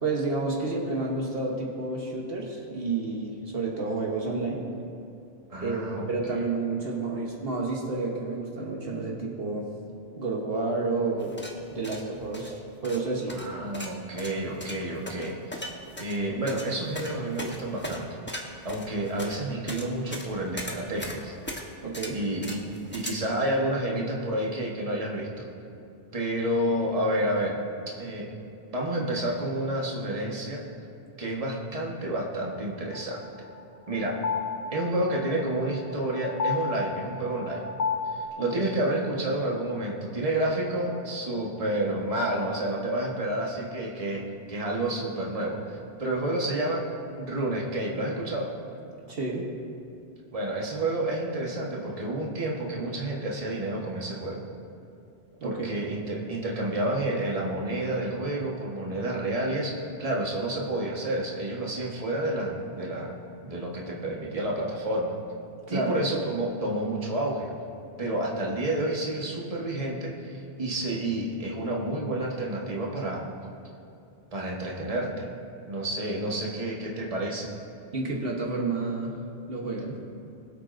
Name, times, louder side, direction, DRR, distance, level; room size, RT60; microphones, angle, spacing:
voice 1, 0.0-4.6 5.6-9.7 10.2-11.3 11.7-12.5 12.8-13.4 21.8-22.2 38.4-38.6 49.1-49.5 55.4-55.5 65.7-66.0 77.9-79.2 79.5-80.0, right 3 dB, 65° right, -1 dB, 1.3 m, -30 dB
voice 2, 5.5-6.1 13.3-15.7 16.0-18.1 18.6-21.3 22.1-22.6 22.9-25.5 26.1-27.6 27.9-28.3 28.7-30.6 31.2-33.2 33.9-34.2 34.7-37.6 38.1-46.8 47.2-48.5 50.3-54.4 55.4-65.1 65.7-67.5 68.0-73.3 74.3-75.3 75.7-77.5, right 1 dB, 35° right, -2 dB, 1.4 m, -30 dB
sound 1, 11.2-23.1, equal, 10° left, 0.9 m, -39 dB
sound 2, 32.9-38.3, left 5 dB, 85° left, 1.0 m, -32 dB
22.0 x 8.2 x 2.6 m, 2.7 s
omnidirectional pair, 1.1 m